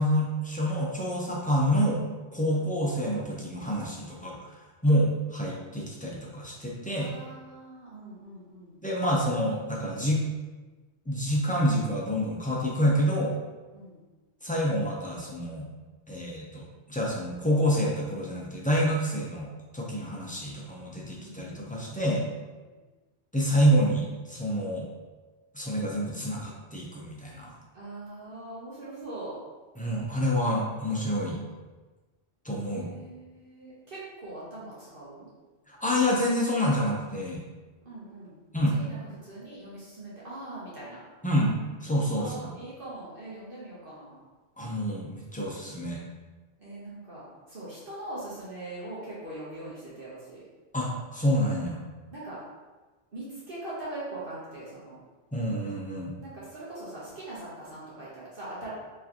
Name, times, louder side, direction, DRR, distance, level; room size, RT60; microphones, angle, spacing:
voice 1, 0.0-2.0 2.3-4.4 4.8-7.1 8.8-10.2 11.1-13.3 14.4-15.7 16.1-16.6 16.9-19.5 19.7-22.2 23.3-24.9 25.5-27.5 29.8-31.4 32.4-32.9 35.7-37.4 38.5-38.8 41.2-42.5 44.6-46.0 50.7-51.8 55.3-56.1, equal, 10° left, -4 dB, 0.5 m, -27 dB
voice 2, 6.9-8.8 13.7-14.0 21.1-21.8 22.7-22.8 27.7-29.4 32.7-35.3 37.8-41.0 42.2-44.2 46.6-50.4 52.1-52.4 53.1-55.0 56.2-58.7, right 2 dB, 55° right, -8 dB, 1.2 m, -42 dB
4.6 x 3.2 x 2.9 m, 1.3 s
omnidirectional pair, 1.1 m